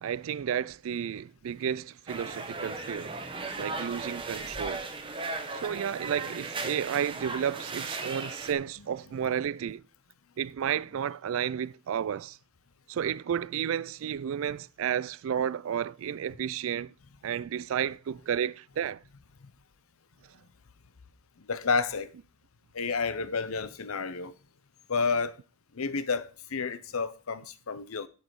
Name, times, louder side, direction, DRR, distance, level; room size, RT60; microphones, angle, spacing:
voice 1, 0.0-3.1 3.6-4.9 5.5-9.8 10.4-12.4 12.9-16.9 17.2-19.0, right 8 dB, 70° right, 0.3 m, -32 dB
sound 1, 2.1-8.5, right 3 dB, 25° right, 1.0 m, -37 dB
voice 2, 21.4-22.1 22.7-24.3 24.9-25.4 25.7-28.1, left 4 dB, 80° left, 0.8 m, -30 dB
7.7 x 7.4 x 4.7 m
head